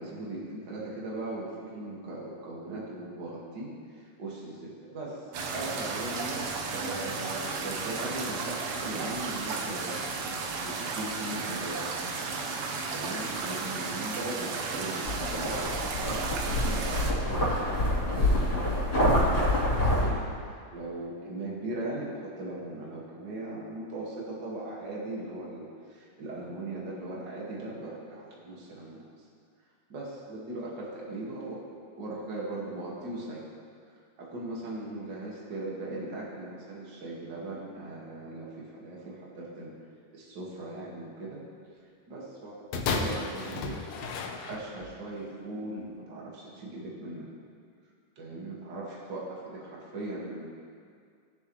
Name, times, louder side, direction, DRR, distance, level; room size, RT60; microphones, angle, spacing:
voice 1, 0.0-5.2 5.5-10.1 10.6-11.8 12.9-15.7 16.0-29.1 29.9-31.6 32.0-33.5 34.2-39.7 40.1-41.4 42.1-43.8 44.5-47.3 48.2-50.5, right 2 dB, 40° right, -5 dB, 2.3 m, -39 dB
sound 1, 5.3-17.1, right 4 dB, 65° right, 1.5 m, -34 dB
sound 2, 15.0-20.1, left 1 dB, 40° left, 3.9 m, -26 dB
sound 3, 42.7-45.0 45.8-45.9, left 4 dB, 70° left, 1.7 m, -33 dB
20.0 x 7.0 x 3.2 m, 2.2 s
omnidirectional pair, 3.3 m